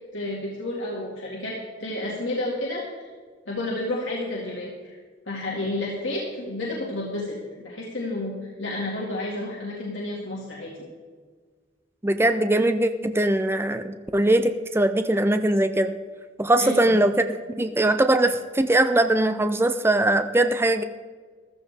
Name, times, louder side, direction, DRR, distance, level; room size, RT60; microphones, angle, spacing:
voice 1, 0.1-3.1 3.5-5.0 5.3-8.3 8.6-10.7 16.6-16.8, left 1 dB, 80° left, -5 dB, 2.3 m, -31 dB
voice 2, 12.0-16.0 16.4-20.8, right 1 dB, 15° right, 8 dB, 0.5 m, -21 dB
14.5 x 13.5 x 3.6 m, 1.5 s
head